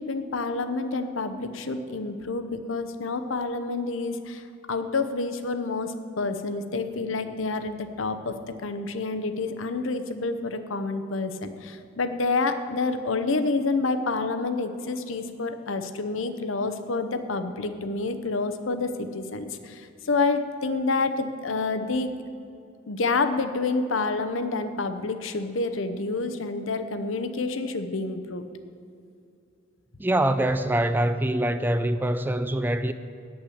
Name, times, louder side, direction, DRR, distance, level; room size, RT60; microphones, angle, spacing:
voice 1, 0.0-22.1 22.9-28.4, left 3 dB, 75° left, 0.8 m, -28 dB
voice 2, 30.0-32.9, right 1 dB, 10° right, 0.3 m, -24 dB
8.7 x 8.0 x 8.4 m
head